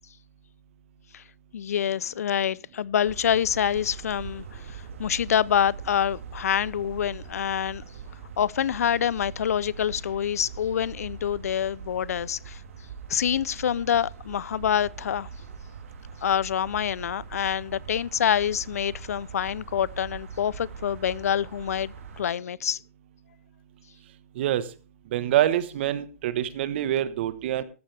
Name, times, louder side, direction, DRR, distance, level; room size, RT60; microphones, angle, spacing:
voice 1, 1.5-7.8 8.4-12.6 13.1-15.3 16.2-22.8, left 9 dB, 75° left, 0.5 m, -26 dB
sound 1, 3.0-22.2, right 6 dB, 65° right, 3.1 m, -42 dB
voice 2, 25.1-27.6, right 12 dB, 45° right, 1.1 m, -25 dB
14.0 x 12.0 x 3.3 m
hypercardioid pair, 155°, 8 cm